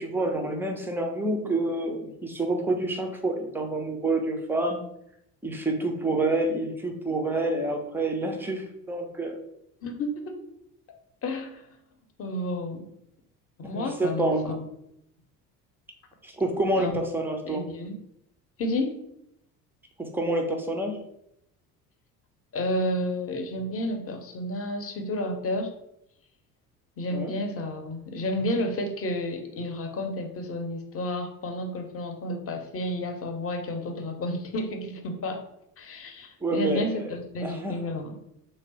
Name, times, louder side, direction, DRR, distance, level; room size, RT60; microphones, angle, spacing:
voice 1, 0.0-4.8 5.4-9.4 13.6-14.6 16.2-17.6 20.0-21.0 27.1-27.3 36.4-36.9 37.4-37.8, right 2 dB, 5° right, 2 dB, 0.3 m, -28 dB
voice 2, 9.8-10.4 11.2-11.6 12.2-12.8 13.6-14.7 16.8-17.0 17.5-18.0 18.6-19.0 22.5-25.7 27.0-35.4 35.8-38.2, left 1 dB, 30° left, 4 dB, 0.7 m, -31 dB
3.2 x 2.0 x 3.9 m, 0.79 s
figure-of-eight pair, 60°, 47 cm